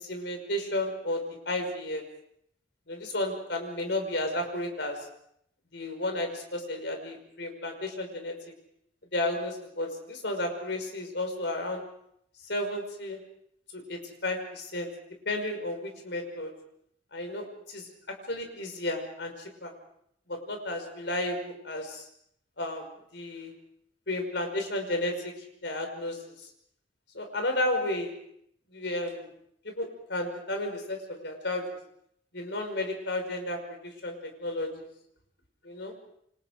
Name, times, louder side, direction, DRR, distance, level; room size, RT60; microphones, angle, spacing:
voice 1, 0.0-2.0 2.9-5.1 5.7-8.3 9.1-11.8 12.5-13.2 13.7-14.9 15.3-16.5 17.1-17.9 18.3-19.7 20.3-22.1 22.6-23.5 24.1-25.3 25.6-26.2 27.1-28.1 28.7-29.3 29.6-31.8 32.3-33.6 34.0-34.1 34.4-34.9 35.6-35.9, left 1 dB, 65° left, 4 dB, 5.6 m, -32 dB
28.5 x 25.0 x 5.1 m, 0.72 s
head